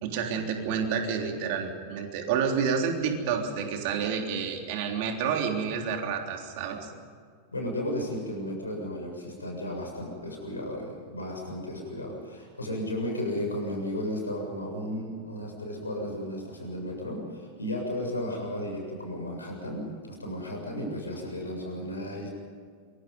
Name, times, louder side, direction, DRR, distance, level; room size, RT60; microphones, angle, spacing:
voice 1, 0.0-6.9, right 6 dB, 50° right, 3 dB, 3.5 m, -29 dB
voice 2, 7.5-22.3, left 1 dB, 80° left, 1 dB, 7.3 m, -34 dB
27.0 x 24.0 x 5.5 m, 2.1 s
figure-of-eight pair, 90°, 0 cm